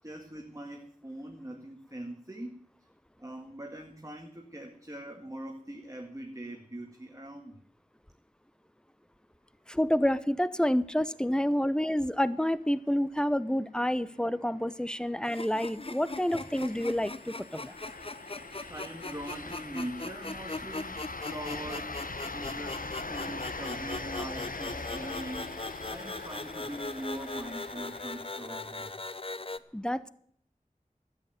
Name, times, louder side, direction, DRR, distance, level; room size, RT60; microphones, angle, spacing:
voice 1, 0.0-2.6 3.2-7.6 11.6-11.7 18.7-22.1 22.3-25.6 25.9-29.0, right 1 dB, 20° right, 2 dB, 1.9 m, -42 dB
voice 2, 9.7-17.7 29.7-30.1, equal, 5° left, 16 dB, 0.7 m, -28 dB
sound 1, 14.0-28.9, left 3 dB, 75° left, 0.9 m, -42 dB
sound 2, 15.2-29.6, left 2 dB, 40° left, 0.7 m, -40 dB
13.0 x 9.1 x 9.3 m, 0.63 s
wide cardioid pair, 40°, 14 cm